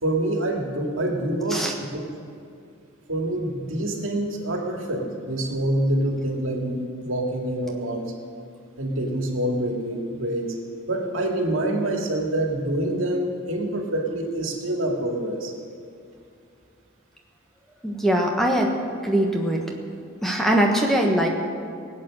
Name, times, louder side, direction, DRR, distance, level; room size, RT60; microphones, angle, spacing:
voice 1, 0.0-2.1 3.1-8.1 8.8-10.6 10.9-15.5, right 1 dB, 80° right, 1 dB, 2.2 m, -26 dB
voice 2, 17.8-18.7 19.0-19.6 20.2-21.3, right 1 dB, ahead, 0 dB, 1.3 m, -21 dB
19.0 x 8.9 x 6.4 m, 2.5 s
head